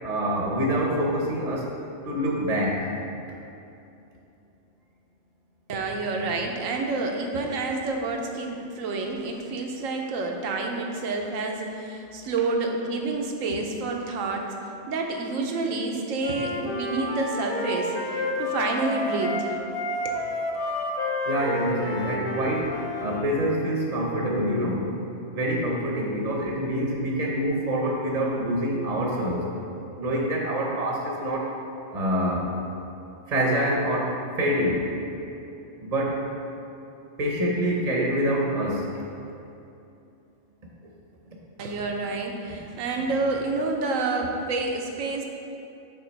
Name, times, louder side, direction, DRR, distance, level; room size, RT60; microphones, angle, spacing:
voice 1, 0.0-1.7 2.0-2.9 21.3-24.9 25.3-29.5 30.0-31.5 31.9-32.5 33.3-34.9 35.8-36.2 37.2-39.0, equal, 40° right, -2 dB, 0.7 m, -26 dB
voice 2, 5.7-14.5 14.9-19.6 20.0-20.2 41.6-45.2, right 3 dB, 85° right, 2 dB, 1.1 m, -28 dB
Wind instrument woodwind instrument, 16.2-23.2, left 2 dB, 50° left, 0.7 m, -30 dB
6.0 x 3.7 x 5.1 m, 2.7 s
omnidirectional pair, 1.3 m